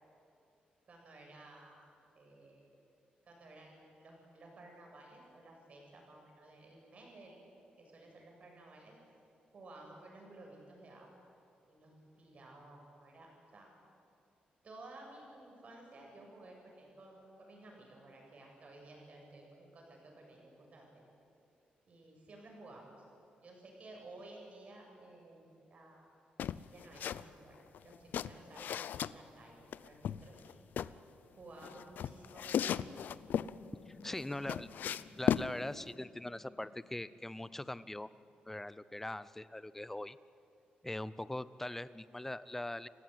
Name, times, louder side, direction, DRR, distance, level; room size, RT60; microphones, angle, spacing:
voice 1, 0.9-1.9 2.1-2.6 3.3-7.4 7.8-9.0 9.5-11.1 11.7-13.7 14.6-21.0 21.9-22.9 23.4-26.1 26.7-30.6 31.3-33.0 34.1-34.8, right 2 dB, 45° right, 0 dB, 7.4 m, -55 dB
sound 1, 26.4-27.2 27.5-29.1 29.7-30.9 31.6-33.5 34.0-35.5, left 9 dB, 75° left, 0.6 m, -35 dB
sound 2, 33.1-39.1, left 4 dB, 35° left, 1.4 m, -58 dB
voice 2, 33.9-34.7 35.2-38.1 38.5-40.2 40.8-42.9, left 1 dB, 10° left, 16 dB, 0.7 m, -41 dB
28.5 x 16.5 x 9.5 m, 2.6 s
cardioid pair, 120°, 3 cm